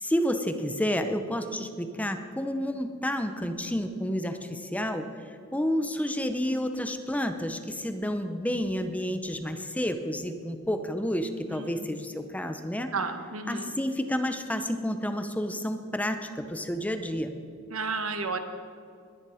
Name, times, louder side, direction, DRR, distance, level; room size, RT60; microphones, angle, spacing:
voice 1, 0.0-12.9 13.5-17.3, equal, 5° left, 8 dB, 0.7 m, -30 dB
voice 2, 11.5-12.0 12.9-13.7 17.7-18.4, right 4 dB, 80° right, 7 dB, 1.3 m, -32 dB
21.5 x 9.7 x 4.9 m, 2.4 s
head